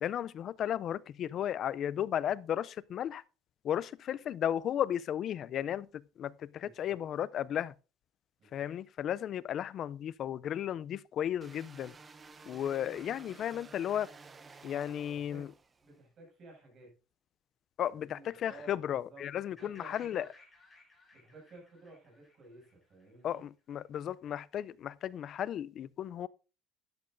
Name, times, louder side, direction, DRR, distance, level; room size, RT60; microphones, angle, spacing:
voice 1, 0.0-3.2 3.6-5.9 6.2-7.7 8.5-11.9 12.5-14.1 14.6-15.5 17.8-20.2 23.2-26.3, left 10 dB, 45° left, 0.4 m, -34 dB
voice 2, 6.5-7.0 8.4-8.7 15.1-15.5 15.8-16.9 17.9-20.3 21.1-23.4, right 2 dB, 40° right, 6.7 m, -54 dB
sound 1, 11.4-16.0, right 4 dB, 20° right, 0.7 m, -53 dB
sound 2, 19.6-23.4, left 3 dB, 5° left, 6.4 m, -60 dB
13.0 x 10.5 x 2.6 m
cardioid pair, 130°, 0 cm